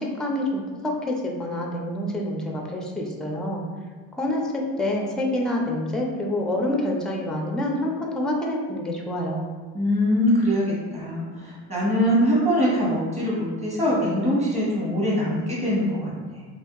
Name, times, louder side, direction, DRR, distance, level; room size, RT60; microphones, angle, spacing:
voice 1, 0.0-3.7 4.2-9.5, left 1 dB, ahead, -1 dB, 0.4 m, -27 dB
voice 2, 9.7-16.5, equal, 15° right, -6 dB, 1.3 m, -23 dB
2.7 x 2.5 x 3.8 m, 1.5 s
cardioid pair, 115°, 38 cm